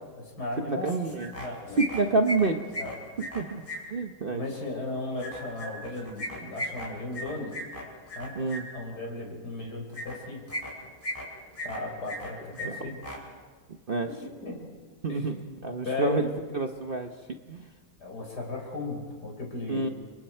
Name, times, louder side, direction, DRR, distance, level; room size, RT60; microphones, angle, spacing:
voice 1, 0.2-1.0 1.3-1.8 2.8-2.9 4.3-7.6 8.2-8.4 8.7-10.4 11.6-13.0 14.2-14.7 15.1-15.3 15.9-16.3 18.0-19.9, left 2 dB, 70° left, 0 dB, 5.6 m, -35 dB
voice 2, 0.7-1.3 1.8-2.7 3.2-3.6 3.9-4.4 8.4-8.6 12.6-12.8 13.9-14.1 15.0-17.1 17.5-17.6 19.7-19.9, right 3 dB, 40° right, 5 dB, 1.0 m, -28 dB
sound 1, 0.8-1.5 1.7-3.8 5.2-8.6 9.9-10.1 10.5-11.2 11.5-12.3 12.5-12.7 12.9-13.2, equal, 20° left, 4.9 m, -36 dB
30.0 x 24.5 x 4.5 m, 1.4 s
omnidirectional pair, 1.8 m